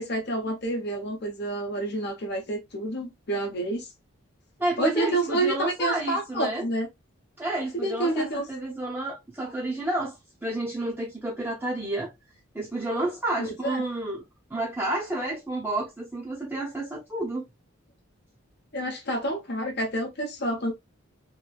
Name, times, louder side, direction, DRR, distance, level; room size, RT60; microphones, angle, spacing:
voice 1, 0.0-3.9 4.8-6.9 7.7-8.4 13.4-13.8 18.7-20.7, right 1 dB, 50° left, 0.8 m, -28 dB
voice 2, 4.6-6.6 7.4-12.1 12.5-14.2 14.5-17.4, right 2 dB, 10° right, 0.6 m, -30 dB
2.9 x 2.6 x 2.3 m
head